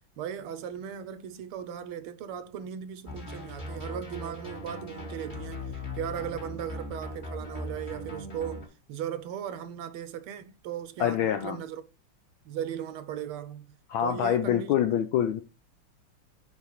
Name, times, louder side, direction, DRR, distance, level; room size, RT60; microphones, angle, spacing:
voice 1, 0.2-5.7 5.9-11.8 12.4-13.6 14.0-14.7, right 9 dB, 85° right, 1.6 m, -37 dB
sound 1, 3.1-8.7, left 2 dB, 25° left, 1.7 m, -39 dB
voice 2, 11.0-11.6 13.9-15.4, left 9 dB, 75° left, 1.3 m, -25 dB
5.0 x 4.7 x 5.6 m
omnidirectional pair, 2.4 m